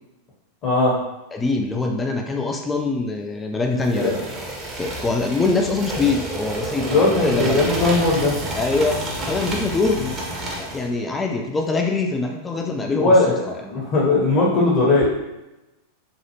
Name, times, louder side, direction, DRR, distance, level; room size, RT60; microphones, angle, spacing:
voice 1, 0.6-1.0 3.9-4.2 6.8-8.3 10.0-10.1 13.0-15.1, left 2 dB, 35° left, -5 dB, 0.7 m, -19 dB
voice 2, 1.3-4.1 4.8-7.7 8.5-10.0 10.6-13.1 13.5-13.6, left 3 dB, 15° left, 2 dB, 0.3 m, -23 dB
sound 1, 3.8-10.9, right 1 dB, 25° right, 0.7 m, -30 dB
3.0 x 2.3 x 2.8 m, 0.98 s
figure-of-eight pair, 90°, 0 cm